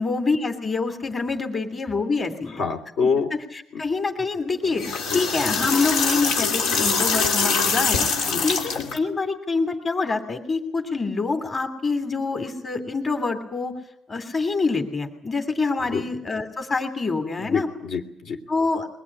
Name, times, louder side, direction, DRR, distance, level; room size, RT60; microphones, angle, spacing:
voice 1, 0.0-2.6 3.5-13.7 14.1-17.7 18.5-18.9, left 3 dB, 25° left, 6 dB, 2.9 m, -26 dB
voice 2, 2.6-3.3 3.7-3.8 5.1-5.2 8.3-8.4 15.9-16.0 17.5-18.4, left 5 dB, 65° left, 4 dB, 2.9 m, -25 dB
sound 1, 4.6-9.0, left 5 dB, 85° left, 2.9 m, -23 dB
22.0 x 19.0 x 9.8 m, 0.71 s
cardioid pair, 150°, 0 cm